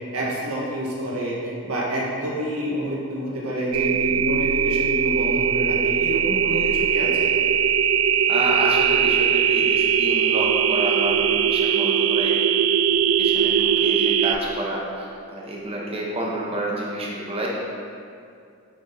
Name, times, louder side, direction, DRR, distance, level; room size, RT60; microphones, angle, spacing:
voice 1, 0.1-7.3, right 1 dB, 85° right, -4 dB, 1.6 m, -28 dB
sound 1, 3.7-14.4, right 8 dB, 65° right, 0.3 m, -20 dB
voice 2, 8.3-12.4 13.2-17.5, right 1 dB, 25° right, -3 dB, 1.1 m, -29 dB
9.5 x 4.4 x 4.0 m, 2.4 s
head